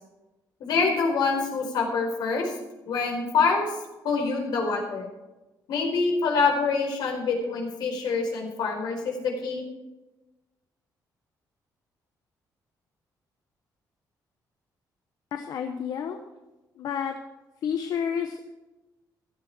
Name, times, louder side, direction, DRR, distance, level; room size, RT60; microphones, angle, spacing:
voice 1, 0.6-2.5 2.9-3.7 4.0-5.1 5.7-9.6, left 4 dB, 85° left, 1 dB, 4.5 m, -26 dB
voice 2, 15.3-16.2 16.8-17.1 17.6-18.5, left 7 dB, 70° left, 5 dB, 1.1 m, -30 dB
16.0 x 13.0 x 4.5 m, 1.1 s
cardioid pair, 145°, 7 cm